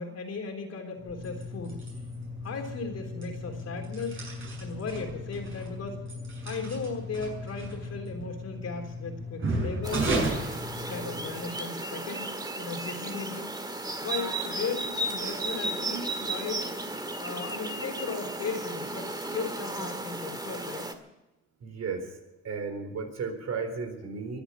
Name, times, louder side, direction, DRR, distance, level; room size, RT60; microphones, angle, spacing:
voice 1, 0.0-1.8 2.4-4.3 4.6-6.0 6.4-10.3 10.9-13.5 14.0-16.7 17.2-20.9, left 4 dB, 55° left, 3 dB, 3.6 m, -36 dB
sound 1, 1.0-11.5, right 1 dB, 40° right, 7.1 m, -35 dB
sound 2, 9.8-20.9, right 2 dB, 15° right, 1.7 m, -34 dB
voice 2, 21.6-22.1 22.4-24.4, right 5 dB, 60° right, 5 dB, 4.0 m, -34 dB
23.0 x 8.1 x 7.1 m, 1.0 s
cardioid pair, 90°, 30 cm